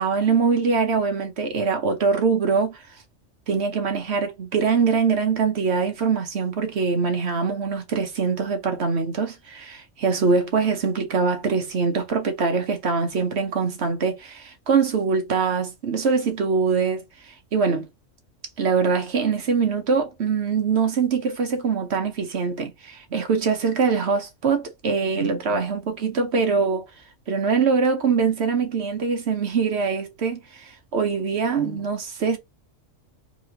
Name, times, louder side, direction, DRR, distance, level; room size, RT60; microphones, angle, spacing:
voice 1, 0.0-2.8 3.5-17.9 18.6-26.8 27.3-32.4, right 5 dB, 60° right, 1.1 m, -23 dB
4.3 x 2.9 x 2.8 m
omnidirectional pair, 1.3 m